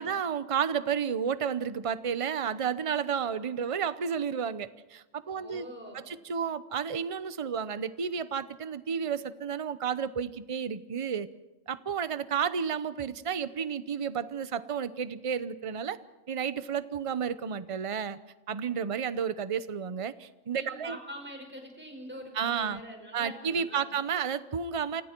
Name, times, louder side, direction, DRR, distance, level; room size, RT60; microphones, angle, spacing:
voice 1, 0.0-5.7 5.9-11.3 11.7-16.0 16.3-18.2 18.5-21.0 22.3-22.8 23.1-25.0, right 7 dB, 30° right, 14 dB, 0.7 m, -31 dB
voice 2, 5.2-6.1 20.5-23.9, equal, 10° right, 2 dB, 5.6 m, -44 dB
29.5 x 26.5 x 4.6 m, 1.1 s
omnidirectional pair, 1.3 m